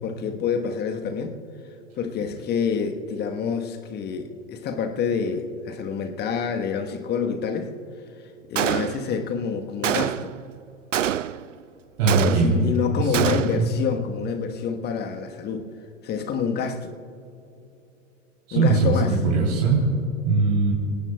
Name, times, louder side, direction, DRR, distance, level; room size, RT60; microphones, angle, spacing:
voice 1, 0.0-1.4 1.9-7.7 8.2-10.4 12.1-15.7 16.0-16.9 18.5-19.1, left 6 dB, 25° left, 6 dB, 1.3 m, -27 dB
Gunshot gunfire, 8.6-9.3 9.8-10.4 10.9-11.5 12.1-12.7 13.1-13.7, right 10 dB, 80° right, 0.5 m, -26 dB
voice 2, 12.0-12.6 13.0-13.7 18.5-19.0 19.2-19.8 20.2-20.7, right 3 dB, 50° right, -3 dB, 3.3 m, -21 dB
25.5 x 17.5 x 2.3 m, 2.8 s
figure-of-eight pair, 100°, 38 cm